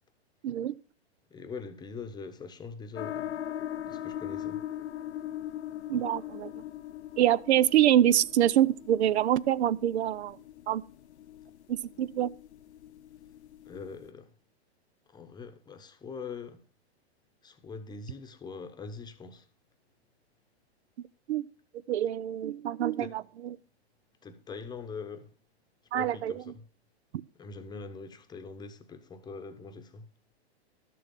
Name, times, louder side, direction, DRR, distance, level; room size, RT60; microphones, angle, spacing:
voice 1, 1.3-3.3 3.8-4.6 13.7-14.3 15.1-16.6 17.4-19.5 23.0-23.1 24.2-25.3 25.9-26.7 27.3-30.1, left 5 dB, 10° left, 0.9 m, -43 dB
sound 1, 3.0-14.1, left 11 dB, 85° left, 0.7 m, -41 dB
voice 2, 5.9-6.5 7.2-10.4 10.7-10.8 11.7-12.3 21.3-21.4 21.9-23.2 25.9-26.3, right 11 dB, 75° right, 0.6 m, -25 dB
12.5 x 6.9 x 5.2 m
hypercardioid pair, 135°, 33 cm